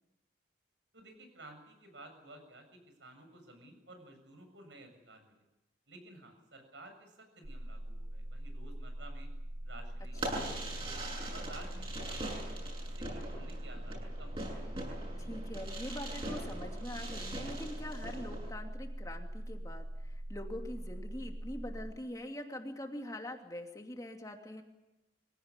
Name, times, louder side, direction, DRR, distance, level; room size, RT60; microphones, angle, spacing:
voice 1, 0.9-5.4 5.9-9.3 9.6-11.0 11.3-12.6 13.0-14.7, right 2 dB, 80° right, 6 dB, 7.4 m, -54 dB
sound 1, 7.4-21.9, right 1 dB, 45° right, 1.8 m, -42 dB
Fireworks, 10.1-18.5, right 1 dB, 30° right, 8.0 m, -42 dB
voice 2, 15.2-24.6, left 1 dB, 20° left, 3 dB, 2.7 m, -44 dB
24.5 x 17.5 x 9.8 m, 0.95 s
head